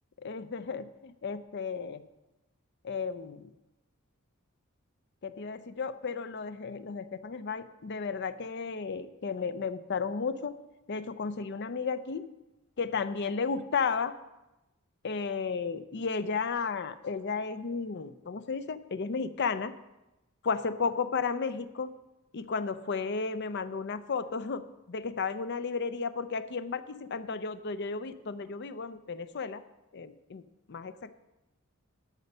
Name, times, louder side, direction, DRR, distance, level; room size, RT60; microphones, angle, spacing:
voice 1, 0.2-2.0 2.8-3.5 5.2-10.5 10.9-12.3 12.8-14.1 15.0-19.7 20.4-21.9 22.3-29.6 29.9-30.4 30.7-31.1, left 5 dB, 50° left, 12 dB, 0.5 m, -33 dB
13.0 x 5.3 x 5.4 m, 0.99 s
head